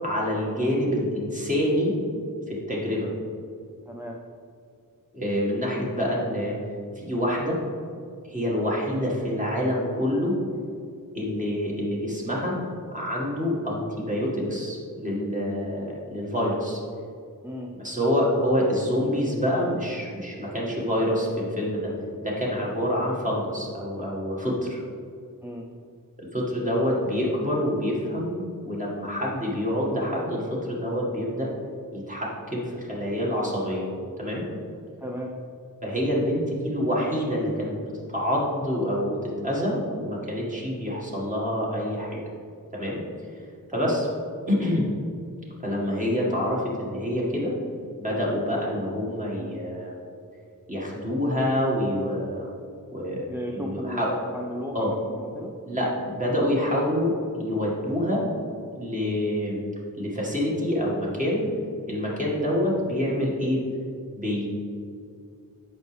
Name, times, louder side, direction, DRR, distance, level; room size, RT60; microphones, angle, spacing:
voice 1, 0.0-1.9 2.5-3.1 5.1-6.6 7.0-7.6 8.2-10.4 11.1-12.5 12.9-16.8 17.8-21.9 22.2-24.8 26.2-31.5 31.9-33.9 34.2-34.4 35.8-39.2 39.4-42.2 42.7-43.0 43.7-44.1 44.5-44.9 45.6-47.5 48.0-50.0 50.7-52.5 52.9-53.3 53.6-54.1 54.7-54.9 55.6-58.2 58.7-59.6 60.0-61.5 61.9-63.6 64.1-64.5, equal, 20° right, -5 dB, 1.9 m, -26 dB
voice 2, 3.9-4.2 17.4-17.7 25.4-25.7 35.0-35.3 43.7-44.0 53.3-55.5, equal, 5° right, -1 dB, 0.5 m, -35 dB
8.2 x 6.1 x 3.4 m, 2.3 s
wide cardioid pair, 80°, 34 cm